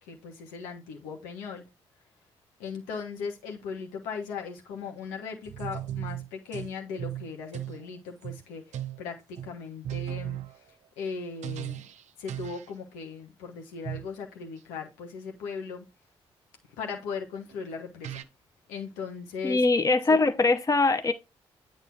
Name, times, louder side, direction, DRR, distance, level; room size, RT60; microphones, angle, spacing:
voice 1, 0.0-1.6 2.6-10.4 11.0-11.9 12.2-15.9 16.8-18.3 18.7-19.6 20.1-20.2, left 5 dB, 80° left, 1.3 m, -38 dB
sound 1, 5.5-6.7 7.0-7.8 8.2-8.4 8.7-9.0 9.4-9.5 9.8-10.6 11.4-12.0 12.3-12.7 13.8-14.1 17.5-17.6 18.0-18.2, right 12 dB, 60° right, 0.5 m, -36 dB
voice 2, 19.4-21.1, left 3 dB, 25° left, 0.9 m, -22 dB
8.5 x 3.0 x 5.7 m
hypercardioid pair, 40°, 14 cm